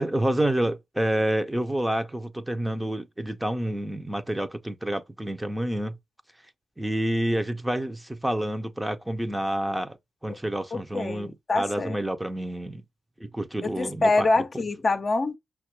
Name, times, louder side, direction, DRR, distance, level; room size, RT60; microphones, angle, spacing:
voice 1, 0.0-6.0 6.8-10.0 10.2-12.8 13.2-14.3, right 1 dB, 15° right, 0.6 m, -28 dB
voice 2, 10.7-12.0 13.6-15.4, left 3 dB, 45° left, 0.6 m, -25 dB
5.7 x 2.3 x 2.9 m
supercardioid pair, 50°, 0 cm